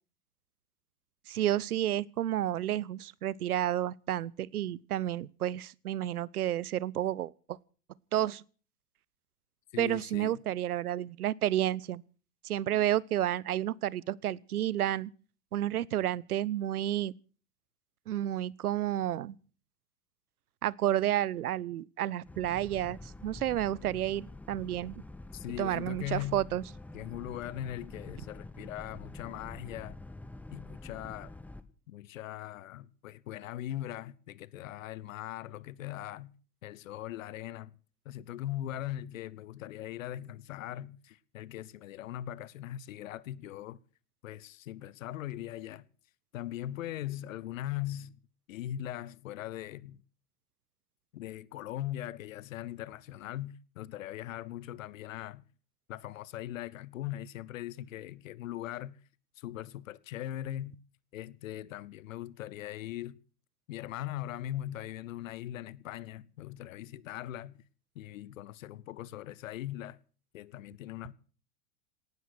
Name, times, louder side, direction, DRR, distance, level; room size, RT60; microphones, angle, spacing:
voice 1, 1.3-7.6 8.1-8.4 9.8-12.0 12.4-15.1 15.5-17.1 18.1-19.4 20.6-25.0 25.6-26.6, right 12 dB, 65° right, 0.7 m, -31 dB
voice 2, 9.7-10.4 25.3-26.4 26.9-30.0 30.5-31.4 31.9-36.3 36.6-37.7 38.0-43.8 44.2-45.8 46.3-48.1 48.5-50.0 51.1-55.4 55.9-59.0 59.4-60.8 61.1-63.2 63.7-67.6 67.9-70.0 70.3-71.1, left 13 dB, 55° left, 1.0 m, -40 dB
Boat Water vehicle, 22.2-31.6, left 2 dB, 5° left, 1.0 m, -47 dB
18.5 x 12.0 x 6.2 m
figure-of-eight pair, 90°, 48 cm